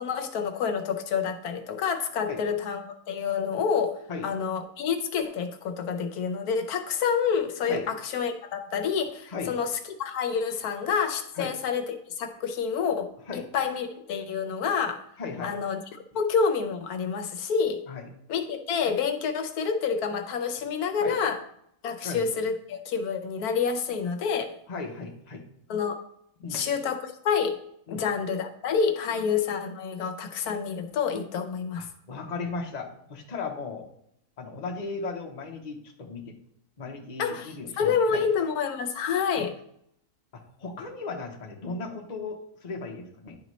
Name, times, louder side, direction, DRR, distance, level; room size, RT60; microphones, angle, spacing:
voice 1, 0.0-2.8 3.1-4.0 4.2-9.7 10.0-15.0 15.4-15.8 16.1-17.8 18.3-21.4 21.8-24.5 25.7-26.0 26.5-27.6 27.9-31.9 37.2-39.5, left 6 dB, 80° left, 6 dB, 1.1 m, -28 dB
voice 2, 15.2-15.6 17.9-18.0 21.0-21.2 22.0-22.3 24.7-25.4 26.4-26.7 27.9-28.1 29.1-29.2 31.8-33.9 34.4-36.4 36.8-38.2 39.4-39.5 40.6-43.4, left 4 dB, 35° left, 1 dB, 0.9 m, -36 dB
10.5 x 3.9 x 3.1 m, 0.71 s
omnidirectional pair, 1.6 m